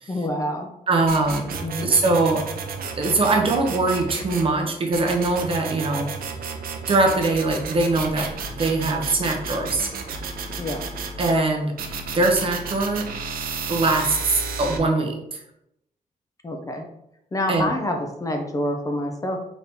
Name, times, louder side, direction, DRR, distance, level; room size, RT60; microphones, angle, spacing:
voice 1, 0.1-0.7 1.6-1.9 10.6-10.8 16.4-16.9 17.3-19.4, left 1 dB, 25° left, 3 dB, 0.5 m, -27 dB
voice 2, 0.9-2.4 3.0-6.1 6.9-9.9 11.2-13.1 13.7-15.4 17.5-17.7, right 2 dB, 40° right, 2 dB, 0.7 m, -22 dB
sound 1, 1.1-4.5 4.9-11.4 11.8-14.8, right 5 dB, 85° right, 0.5 m, -32 dB
4.1 x 2.8 x 3.5 m, 0.79 s
wide cardioid pair, 155°, 15 cm